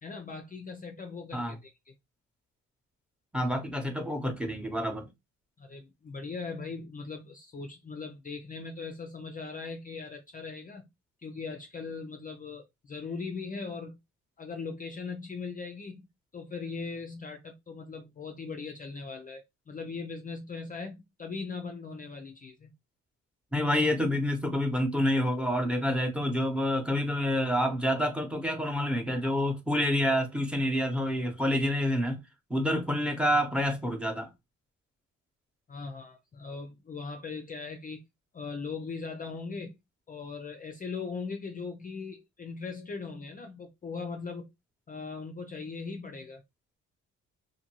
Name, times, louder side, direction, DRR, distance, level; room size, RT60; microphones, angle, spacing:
voice 1, 0.0-1.9 5.6-10.9 11.2-14.0 14.4-16.1 16.3-22.7 35.7-38.0 38.3-39.8 40.1-44.5 44.9-46.4, left 4 dB, 30° left, 0.4 m, -39 dB
voice 2, 3.3-5.0 23.5-32.2 32.5-34.3, equal, 5° right, 0.9 m, -28 dB
2.7 x 2.5 x 3.0 m
cardioid pair, 90°, 30 cm